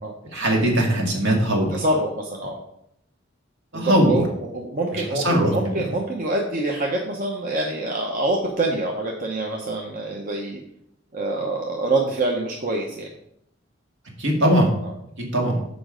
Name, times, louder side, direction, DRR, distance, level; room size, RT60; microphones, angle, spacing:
voice 1, 0.3-1.7 3.7-4.2 4.9-5.8 14.2-14.7 15.2-15.6, right 1 dB, 70° right, 0 dB, 2.0 m, -20 dB
voice 2, 1.7-2.6 3.7-10.6 11.1-13.1 14.8-14.9, right 2 dB, 45° right, 0 dB, 0.9 m, -26 dB
7.0 x 5.1 x 5.0 m, 0.74 s
head